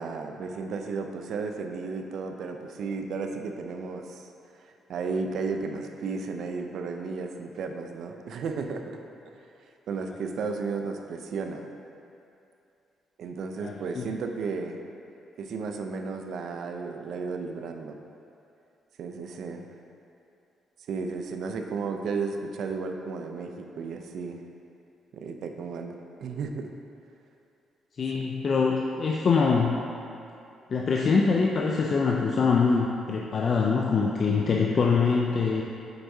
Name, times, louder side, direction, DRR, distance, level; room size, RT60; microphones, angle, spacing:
voice 1, 0.0-4.3 4.6-8.8 9.9-11.6 13.2-14.8 15.4-18.0 19.0-19.7 20.9-24.4 25.1-26.7 28.1-28.2, right 4 dB, 70° right, 5 dB, 0.4 m, -33 dB
voice 2, 13.6-14.1 28.0-29.8 30.7-35.6, left 5 dB, 50° left, -1 dB, 0.4 m, -24 dB
7.8 x 4.6 x 2.7 m, 2.7 s
cardioid pair, 90°, 0 cm